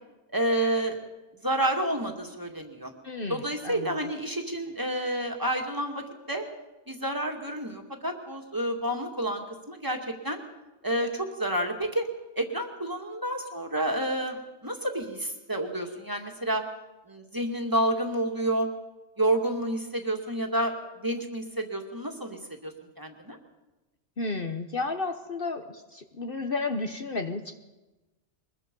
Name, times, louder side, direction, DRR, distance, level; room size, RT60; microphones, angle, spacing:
voice 1, 0.3-1.0 1.4-2.9 3.3-6.4 6.9-10.4 10.8-12.1 12.4-16.6 17.1-18.7 19.2-20.7 21.0-23.4, right 1 dB, 15° right, 3 dB, 2.1 m, -29 dB
voice 2, 3.0-3.9 24.2-27.6, left 3 dB, 50° left, 6 dB, 1.2 m, -32 dB
23.0 x 21.0 x 5.4 m, 1.1 s
omnidirectional pair, 1.3 m